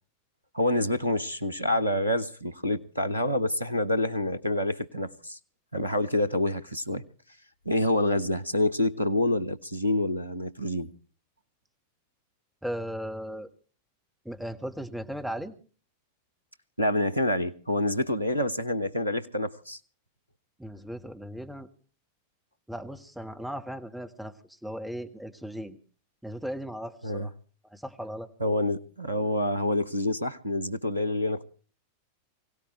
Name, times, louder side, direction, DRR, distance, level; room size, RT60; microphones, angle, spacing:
voice 1, 0.5-5.4 5.7-7.0 7.6-10.9 16.8-19.8 27.0-27.3 28.4-31.4, left 1 dB, 85° right, 1.0 m, -27 dB
voice 2, 12.6-13.5 14.2-15.5 20.6-21.7 22.7-24.3 24.6-25.8 26.2-27.3 27.7-28.3, equal, 5° right, 1.6 m, -37 dB
24.0 x 17.0 x 3.1 m
figure-of-eight pair, 90°, 0 cm